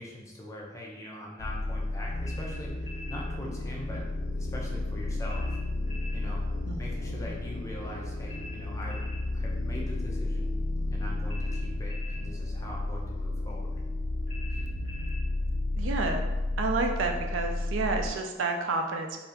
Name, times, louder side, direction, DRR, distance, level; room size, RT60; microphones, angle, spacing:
voice 1, 0.0-2.7 3.1-4.0 4.4-5.6 6.1-6.4 6.8-9.0 9.3-10.5 10.9-13.7 14.5-14.6, left 1 dB, 15° left, -2 dB, 0.5 m, -42 dB
sound 1, 1.4-18.1, left 2 dB, 75° left, 0.4 m, -32 dB
sound 2, 2.2-3.2 5.3-6.2 8.3-9.2 11.3-12.2 14.3-15.2, left 3 dB, 45° left, 1.0 m, -46 dB
voice 2, 6.7-7.3 15.8-16.2 16.6-19.2, right 3 dB, 80° right, 4 dB, 0.4 m, -30 dB
2.7 x 2.6 x 3.3 m, 1.1 s
head